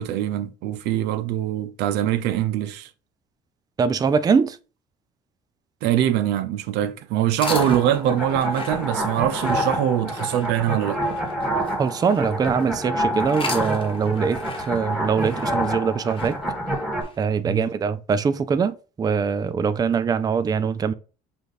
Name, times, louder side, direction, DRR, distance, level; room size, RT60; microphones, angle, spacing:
voice 1, 0.0-2.9 5.8-11.0 17.4-17.7, right 11 dB, 90° right, 0.5 m, -23 dB
voice 2, 3.8-4.6 11.8-14.4 14.7-16.3 17.2-20.9, right 6 dB, 25° right, 0.4 m, -22 dB
sound 1, 7.3-12.6 13.2-17.2, left 3 dB, 30° left, 1.0 m, -39 dB
sound 2, 7.4-17.0, equal, ahead, 1.4 m, -27 dB
5.1 x 2.5 x 4.0 m
cardioid pair, 110°, 17 cm